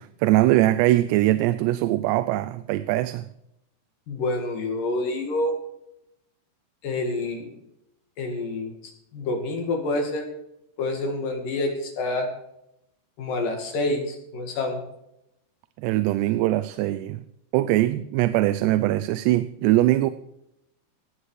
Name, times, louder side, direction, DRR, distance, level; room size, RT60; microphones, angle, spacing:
voice 1, 0.0-3.3 15.8-17.2 17.5-20.1, right 15 dB, 90° right, 13 dB, 2.8 m, -22 dB
voice 2, 4.1-5.6 6.8-7.4 8.2-8.7 9.1-10.2 10.8-12.3 13.2-14.8, left 2 dB, 60° left, 3 dB, 3.4 m, -27 dB
18.0 x 8.2 x 4.9 m, 0.80 s
omnidirectional pair, 4.8 m